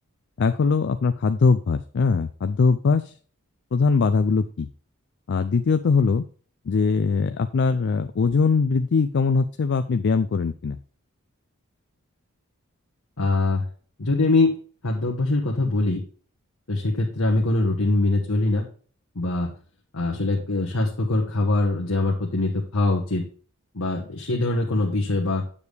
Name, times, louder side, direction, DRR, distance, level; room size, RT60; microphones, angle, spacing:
voice 1, 0.4-3.1 3.7-4.7 5.3-6.3 6.7-10.8, left 4 dB, 55° left, 10 dB, 0.4 m, -21 dB
voice 2, 13.2-13.6 14.0-14.5 14.8-16.0 16.7-18.6 19.1-19.5 19.9-23.3 23.7-25.4, left 2 dB, 70° left, -2 dB, 1.3 m, -23 dB
8.2 x 7.1 x 3.4 m, 0.42 s
head